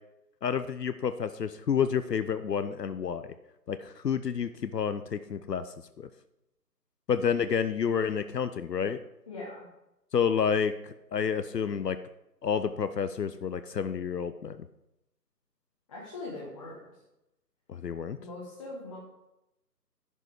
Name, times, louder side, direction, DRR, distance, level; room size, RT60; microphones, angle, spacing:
voice 1, 0.4-3.3 3.7-5.6 6.0-6.1 7.1-9.0 10.1-12.0 12.4-14.6 17.7-18.2, left 7 dB, 75° left, 11 dB, 0.7 m, -29 dB
voice 2, 9.3-9.7 15.9-16.8 18.2-19.0, left 2 dB, 20° left, -5 dB, 1.2 m, -41 dB
11.0 x 5.4 x 5.1 m, 0.89 s
figure-of-eight pair, 150°, 50 cm